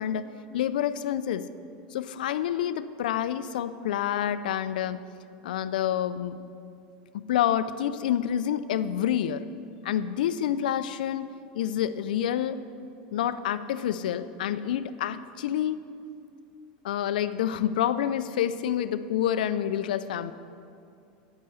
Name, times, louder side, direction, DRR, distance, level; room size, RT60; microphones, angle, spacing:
voice 1, 0.0-1.5 1.9-5.0 5.4-6.4 7.1-9.5 9.8-12.6 13.1-15.8 16.8-20.3, left 10 dB, 85° left, 12 dB, 0.4 m, -28 dB
9.0 x 8.6 x 8.2 m, 2.5 s
supercardioid pair, 110°, 4 cm